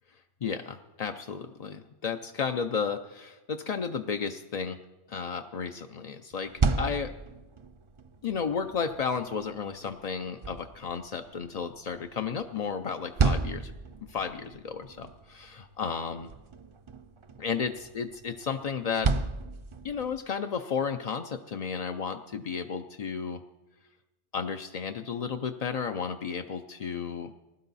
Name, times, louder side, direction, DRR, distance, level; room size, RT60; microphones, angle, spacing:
voice 1, 0.4-4.8 5.1-7.1 8.2-13.7 14.1-16.3 17.4-19.1 19.8-23.4 24.3-27.3, left 6 dB, 50° left, 6 dB, 0.5 m, -33 dB
opening fridge, 6.3-20.3, right 4 dB, 40° right, 0.4 m, -34 dB
20.0 x 12.0 x 4.1 m, 1.1 s
omnidirectional pair, 1.2 m